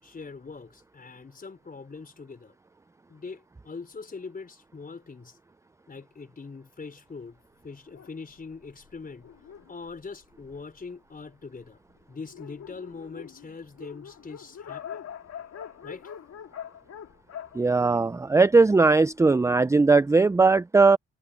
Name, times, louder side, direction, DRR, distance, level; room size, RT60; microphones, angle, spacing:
voice 1, 0.0-2.5 3.1-5.4 5.9-7.4 7.6-9.3 9.7-11.8 12.1-15.0 15.8-16.1, left 4 dB, 30° left, 4.8 m, -42 dB
Dog, 7.9-10.9 11.6-11.7 12.0-12.1 12.3-18.7, left 8 dB, 60° left, 2.3 m, -43 dB
voice 2, 17.5-21.0, right 3 dB, 10° right, 0.4 m, -19 dB
cardioid pair, 90°, 30 cm